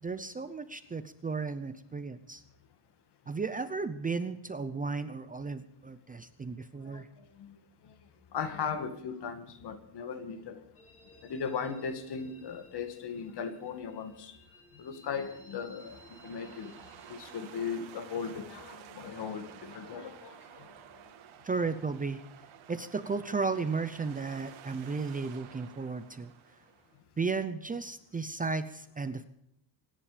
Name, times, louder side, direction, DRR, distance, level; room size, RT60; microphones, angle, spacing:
voice 1, 0.0-2.4 3.3-7.1 21.4-22.2 22.7-26.3 27.2-29.2, right 4 dB, 20° right, 0.6 m, -34 dB
voice 2, 8.3-10.6 11.2-14.3 14.8-16.7 17.1-20.7, left 6 dB, 55° left, 2.2 m, -38 dB
sound 1, 10.7-17.6, left 1 dB, 25° left, 5.2 m, -58 dB
sound 2, 15.8-27.0, right 9 dB, 85° right, 2.4 m, -52 dB
25.5 x 10.5 x 5.1 m
cardioid pair, 175°, 47 cm